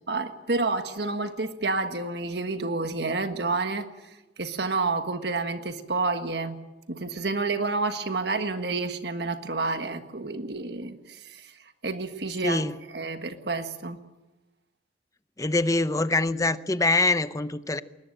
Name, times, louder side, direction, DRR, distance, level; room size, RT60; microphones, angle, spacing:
voice 1, 0.1-3.9 4.4-6.6 6.9-11.5 11.8-14.0, right 3 dB, 60° right, 1.5 m, -29 dB
voice 2, 12.4-12.7 15.4-17.8, left 2 dB, 20° left, 0.7 m, -24 dB
21.5 x 20.0 x 9.1 m
head